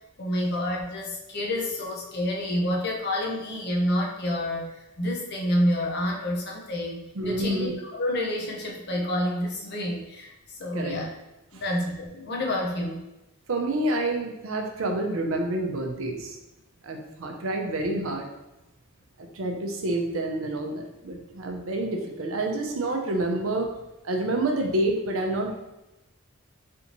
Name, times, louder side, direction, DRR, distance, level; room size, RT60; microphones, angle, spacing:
voice 1, 0.2-11.1 11.5-13.0, left 1 dB, 50° left, -1 dB, 0.7 m, -28 dB
voice 2, 7.2-7.8 10.7-10.9 13.5-16.4 16.8-18.3 19.2-23.7 24.0-25.6, right 2 dB, 70° right, 2 dB, 0.6 m, -28 dB
3.4 x 2.6 x 2.9 m, 0.95 s
head